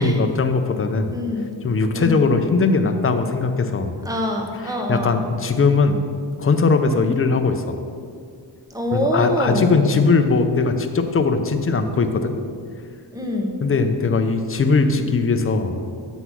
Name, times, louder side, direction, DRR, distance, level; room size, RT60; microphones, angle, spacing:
voice 1, 0.0-1.1 1.6-3.9 4.6-6.0 6.4-7.8 8.9-12.3 13.6-15.8, left 4 dB, 30° left, 7 dB, 0.6 m, -20 dB
voice 2, 1.1-1.5 1.9-2.2 4.0-5.2 8.7-9.8 13.1-13.5, left 1 dB, 10° right, 1 dB, 1.2 m, -24 dB
8.1 x 4.0 x 6.1 m, 2.2 s
cardioid pair, 80°, 43 cm